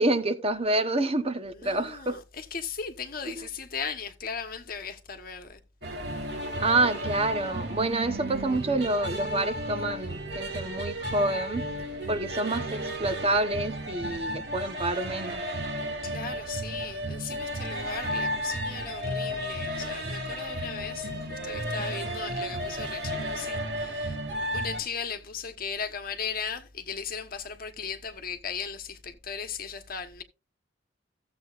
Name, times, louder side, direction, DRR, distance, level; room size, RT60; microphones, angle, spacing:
voice 1, 0.0-2.2 6.6-11.6 12.1-15.4, right 2 dB, 30° right, 1.0 m, -27 dB
voice 2, 1.5-5.6 16.0-24.2 24.5-30.2, left 6 dB, 50° left, 1.3 m, -37 dB
sound 1, 5.8-24.8, equal, 60° right, 2.4 m, -33 dB
15.0 x 7.7 x 2.5 m
head